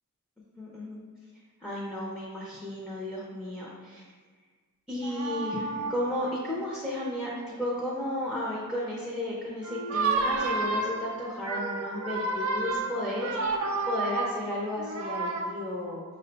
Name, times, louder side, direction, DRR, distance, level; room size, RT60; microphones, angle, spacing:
voice 1, 0.6-1.0 1.6-4.1 4.9-16.0, left 1 dB, 5° left, -6 dB, 0.6 m, -34 dB
sound 1, 5.0-6.3 7.4-7.7 9.6-15.4, right 3 dB, 65° right, 0.5 m, -31 dB
6.1 x 2.2 x 3.9 m, 1.5 s
head